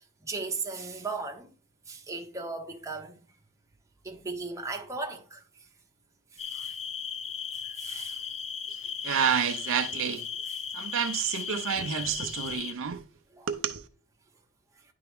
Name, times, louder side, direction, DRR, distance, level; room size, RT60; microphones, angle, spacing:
voice 1, 0.2-1.5 1.9-3.2 4.0-5.4 6.3-6.8 7.6-8.2 8.8-8.9 10.5-10.6 11.3-11.5 13.3-13.5, right 3 dB, 15° right, 0.8 m, -37 dB
sound 1, 6.4-12.7, left 7 dB, 30° left, 0.5 m, -36 dB
voice 2, 9.0-10.2 10.7-13.0 13.5-13.8, right 8 dB, 60° right, 0.6 m, -29 dB
10.0 x 3.5 x 3.5 m
head